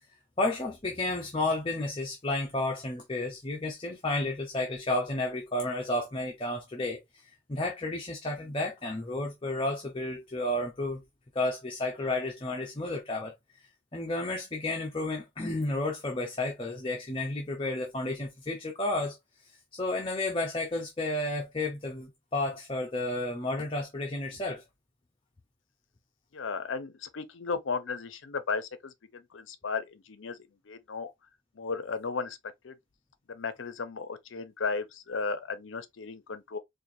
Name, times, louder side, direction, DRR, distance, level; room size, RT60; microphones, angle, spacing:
voice 1, 0.4-7.0 7.5-11.0 11.3-13.3 13.9-19.2 19.7-24.6, left 2 dB, 25° left, 0.7 m, -32 dB
voice 2, 26.3-30.4 30.6-31.1 31.6-32.4 32.6-32.7 33.3-36.6, left 4 dB, 70° left, 0.6 m, -35 dB
4.4 x 2.6 x 2.6 m
head